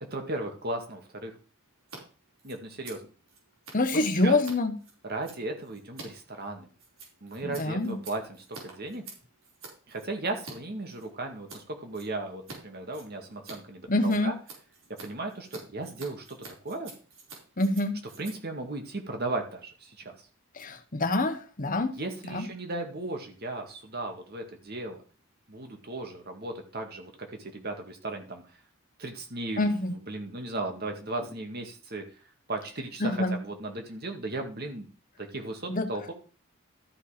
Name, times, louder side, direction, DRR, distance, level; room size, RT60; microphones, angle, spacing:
voice 1, 0.1-1.3 2.4-3.1 3.9-4.4 5.1-6.7 7.2-9.0 9.9-14.3 15.0-16.4 16.6-16.9 18.2-20.2 22.0-25.0 25.5-28.4 29.0-32.0 32.5-34.9 35.2-36.1, right 2 dB, 45° right, 4 dB, 2.0 m, -36 dB
Scissors, 1.8-2.0 2.3-10.6 10.9-11.6 11.9-12.6 12.8-19.6, right 3 dB, 75° right, 4.5 m, -48 dB
voice 2, 3.7-4.8 7.4-8.0 13.9-14.3 17.6-18.0 20.5-22.0 22.3-22.5 29.6-29.9 33.0-33.4 35.7-35.9, left 2 dB, 40° left, 8 dB, 1.1 m, -26 dB
13.0 x 5.4 x 5.1 m, 0.37 s
head